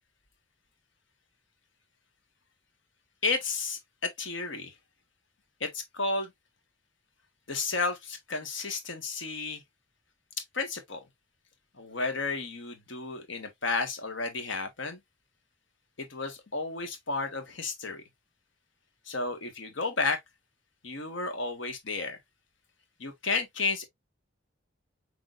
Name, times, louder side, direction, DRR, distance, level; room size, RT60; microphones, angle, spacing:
voice 1, 3.2-4.7 5.6-6.3 7.5-9.6 10.5-11.0 11.8-15.0 16.0-18.0 19.1-20.2 20.8-22.2 23.0-23.9, left 3 dB, 75° left, 1.5 m, -32 dB
6.0 x 3.4 x 2.4 m
head